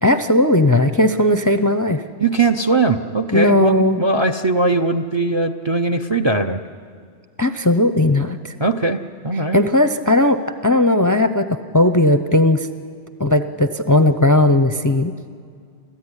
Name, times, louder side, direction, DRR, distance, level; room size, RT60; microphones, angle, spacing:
voice 1, 0.0-2.0 3.3-4.0 7.4-8.5 9.5-11.5 11.7-12.7 13.2-15.1, left 1 dB, 20° left, 10 dB, 0.5 m, -16 dB
voice 2, 2.2-6.6 8.6-9.6, right 3 dB, 30° right, 9 dB, 0.6 m, -20 dB
29.5 x 14.0 x 9.8 m, 2.2 s
omnidirectional pair, 1.2 m